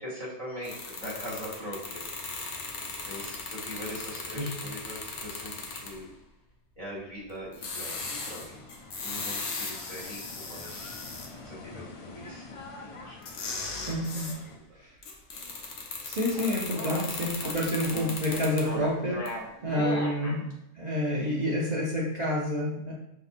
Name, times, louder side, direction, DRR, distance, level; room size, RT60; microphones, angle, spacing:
voice 1, 0.0-2.1 3.0-6.1 6.8-8.0 8.3-8.6 9.0-11.0 11.4-12.6 12.9-13.2 14.1-14.3, equal, 35° left, -7 dB, 1.5 m, -41 dB
sound 1, 0.6-6.0 7.5-11.3 13.2-14.4 15.0-18.8 19.3-19.4, left 3 dB, 85° left, 1.0 m, -38 dB
sound 2, 7.8-14.6, left 3 dB, 55° left, 0.3 m, -47 dB
voice 2, 13.7-14.3 14.8-15.0 16.0-22.9, left 1 dB, 45° right, -5 dB, 0.7 m, -29 dB
sound 3, 16.3-20.4, equal, 15° left, 0.7 m, -37 dB
5.3 x 2.8 x 2.5 m, 0.84 s
omnidirectional pair, 1.2 m